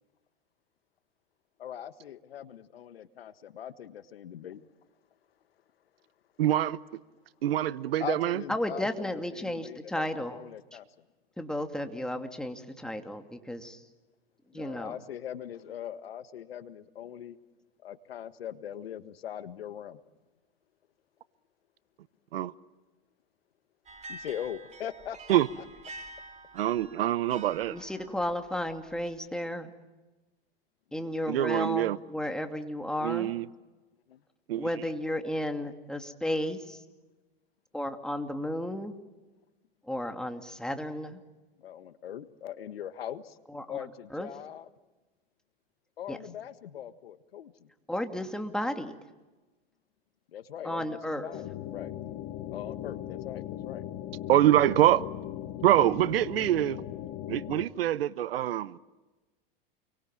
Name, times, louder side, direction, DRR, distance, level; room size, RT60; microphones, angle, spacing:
voice 1, 1.6-4.6 8.0-10.9 14.5-17.4 17.8-20.0 24.1-25.4 31.0-31.1 34.1-34.2 35.2-35.3 41.6-43.4 43.7-44.7 46.0-47.7 50.3-51.9 52.5-53.8, left 10 dB, 85° left, 1.6 m, -41 dB
voice 2, 6.4-6.8 7.4-8.4 22.3-22.5 25.3-25.5 26.5-27.8 31.3-32.0 33.0-33.5 34.5-34.7 54.3-55.1 55.6-56.8 57.3-58.8, right 13 dB, 80° right, 1.0 m, -25 dB
voice 3, 8.5-10.4 11.4-13.8 14.5-15.0 27.7-29.7 30.9-33.3 34.6-36.8 37.7-39.0 39.9-41.2 43.5-43.8 44.1-44.3 46.1-46.2 47.9-49.0 50.6-51.3, left 1 dB, ahead, 2.5 m, -33 dB
sound 1, 23.9-29.1, right 2 dB, 25° right, 3.9 m, -48 dB
sound 2, 51.3-57.6, left 12 dB, 45° left, 2.3 m, -38 dB
29.5 x 23.5 x 7.5 m
hypercardioid pair, 110°, 29 cm